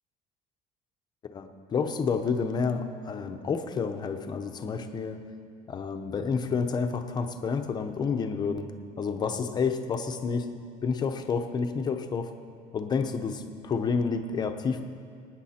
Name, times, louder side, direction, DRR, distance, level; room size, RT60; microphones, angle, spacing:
voice 1, 1.3-5.2 5.7-8.7 9.0-10.5 10.8-12.3 12.7-14.8, left 5 dB, 25° left, 6 dB, 0.8 m, -29 dB
24.0 x 9.7 x 4.3 m, 2.2 s
cardioid pair, 170°, 16 cm